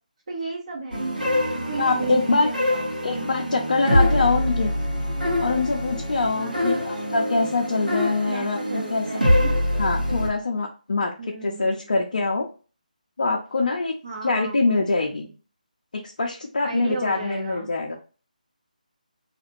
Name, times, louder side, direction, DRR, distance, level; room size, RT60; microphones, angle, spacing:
voice 1, 0.3-1.1 1.7-2.9 6.3-7.0 8.3-9.6 11.2-11.9 14.0-15.3 16.6-17.7, right 3 dB, 45° right, -4 dB, 0.9 m, -34 dB
sound 1, 0.9-10.3, left 1 dB, 85° right, 1.0 m, -24 dB
voice 2, 1.8-2.5 3.0-4.7 5.4-9.0 9.8-11.1 11.4-12.5 13.2-13.9 14.2-15.3 16.2-17.9, left 3 dB, 60° left, 0 dB, 0.6 m, -24 dB
2.4 x 2.4 x 3.0 m, 0.36 s
figure-of-eight pair, 150°, 5 cm